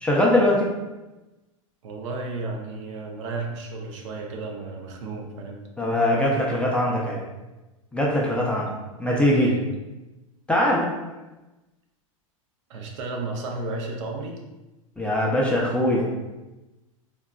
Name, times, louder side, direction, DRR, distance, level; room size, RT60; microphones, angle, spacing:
voice 1, 0.0-0.7 5.8-7.2 7.9-8.7 9.0-9.5 10.5-11.0 15.0-16.1, left 1 dB, 5° left, -3 dB, 0.4 m, -21 dB
voice 2, 1.8-5.6 9.3-9.6 12.7-14.4, right 3 dB, 60° right, 1 dB, 0.6 m, -33 dB
3.9 x 2.2 x 2.2 m, 1.1 s
hypercardioid pair, 110°, 18 cm